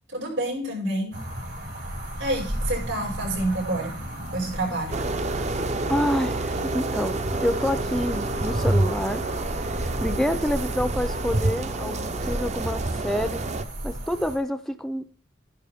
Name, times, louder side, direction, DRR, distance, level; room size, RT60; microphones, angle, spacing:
voice 1, 0.1-1.1 2.2-4.0 4.3-4.9 10.0-10.3, right 1 dB, 85° right, 0 dB, 6.0 m, -28 dB
sound 1, 1.1-14.4, equal, 60° right, 5.2 m, -35 dB
sound 2, 4.9-13.6, right 2 dB, 35° right, 0.7 m, -28 dB
voice 2, 5.9-9.2 9.6-13.5 13.8-15.1, equal, ahead, 10 dB, 0.5 m, -28 dB
12.5 x 11.0 x 3.6 m, 0.39 s
head